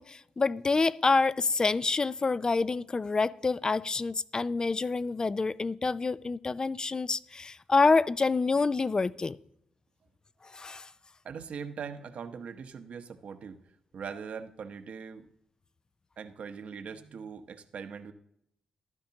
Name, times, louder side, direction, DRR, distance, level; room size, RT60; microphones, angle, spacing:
voice 1, 0.0-9.4 10.5-10.9, left 4 dB, 35° left, 17 dB, 0.4 m, -27 dB
voice 2, 11.2-13.6 13.9-15.3 16.2-18.1, right 6 dB, 70° right, 8 dB, 1.0 m, -41 dB
14.5 x 11.5 x 2.9 m, 0.73 s
cardioid pair, 70°, 2 cm